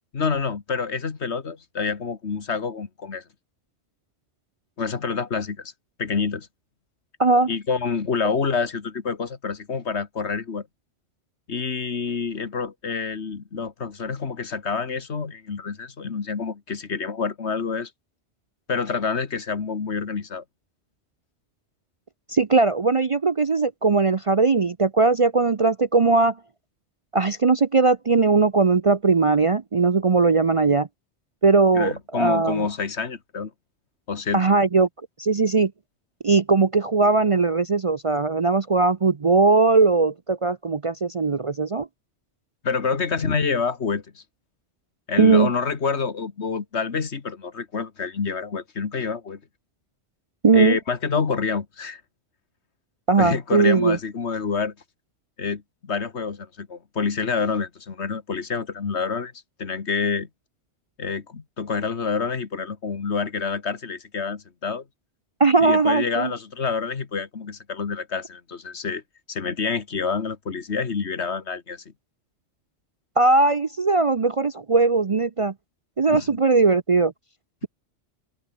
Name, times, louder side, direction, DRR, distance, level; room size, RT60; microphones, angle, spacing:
voice 1, 0.1-3.2 4.8-5.7 6.0-6.5 7.5-10.7 11.5-17.9 18.7-20.4 31.7-33.5 34.1-34.5 42.6-44.2 45.1-49.4 50.5-52.0 53.2-54.7 55.4-59.3 59.6-60.3 61.0-64.8 65.6-69.0 69.3-71.8 76.1-76.4 77.6-77.7, left 5 dB, 70° left, 1.9 m, -27 dB
voice 2, 22.3-26.3 27.1-30.9 31.4-32.7 34.3-34.9 35.2-35.7 36.2-41.9 45.2-45.5 50.4-50.8 53.1-54.0 65.4-66.3 73.2-75.5 76.0-77.1, right 4 dB, 35° right, 0.6 m, -19 dB
open air
omnidirectional pair, 1.2 m